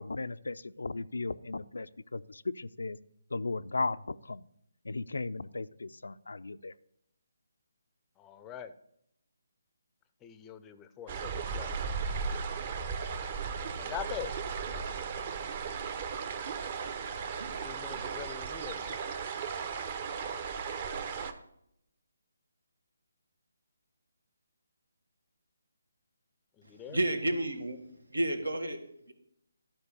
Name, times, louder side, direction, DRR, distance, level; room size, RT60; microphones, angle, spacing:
voice 1, 0.0-3.0 3.3-4.4 4.8-6.7, left 3 dB, 75° left, 15 dB, 0.4 m, -36 dB
voice 2, 8.2-8.7 10.2-11.9 13.8-14.3 17.4-19.0 26.6-27.0, left 9 dB, 15° left, 12 dB, 0.5 m, -43 dB
sound 1, 11.1-21.3, right 5 dB, 35° right, 0.8 m, -36 dB
voice 3, 26.6-29.1, right 1 dB, 85° right, 7 dB, 1.6 m, -32 dB
12.0 x 4.5 x 6.7 m, 0.74 s
figure-of-eight pair, 150°, 0 cm